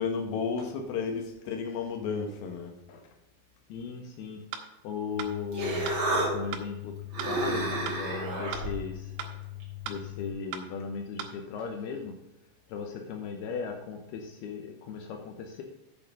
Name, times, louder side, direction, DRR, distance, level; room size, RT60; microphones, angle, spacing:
voice 1, 0.0-3.1, left 5 dB, 65° left, 3 dB, 2.5 m, -33 dB
voice 2, 3.7-4.4 4.8-5.9 6.2-9.1 9.9-12.1 12.7-15.6, left 6 dB, 80° left, 2 dB, 2.3 m, -37 dB
sound 1, 4.5-4.7 5.2-5.3 5.9-6.0 6.5-6.7 7.2-7.3 7.9-8.0 8.5-8.7 9.2-9.3 9.9-10.0 10.5-10.7 11.2-11.3, right 9 dB, 80° right, 3.3 m, -37 dB
Human voice, 5.1-10.3, equal, 45° right, 1.7 m, -32 dB
8.3 x 6.8 x 5.2 m, 0.91 s
omnidirectional pair, 5.8 m